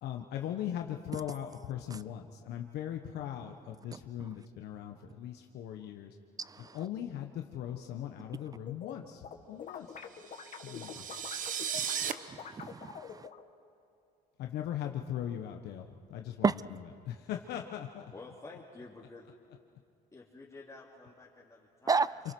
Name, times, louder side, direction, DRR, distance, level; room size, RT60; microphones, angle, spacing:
voice 1, 0.0-6.1 6.6-10.0 10.6-11.0 14.4-16.8 17.0-18.0, left 10 dB, 75° left, 3 dB, 1.3 m, -39 dB
sound 1, 8.4-8.9 9.2-13.4, left 7 dB, 50° left, 1.9 m, -45 dB
sound 2, 10.2-12.1, right 8 dB, 50° right, 1.0 m, -36 dB
voice 2, 11.8-13.3 16.4-16.5 21.9-22.1, right 4 dB, 20° right, 18 dB, 0.5 m, -31 dB
voice 3, 18.1-19.3 20.1-22.2, left 3 dB, 20° left, -5 dB, 3.1 m, -50 dB
27.5 x 23.5 x 6.2 m, 2.5 s
cardioid pair, 110°, 17 cm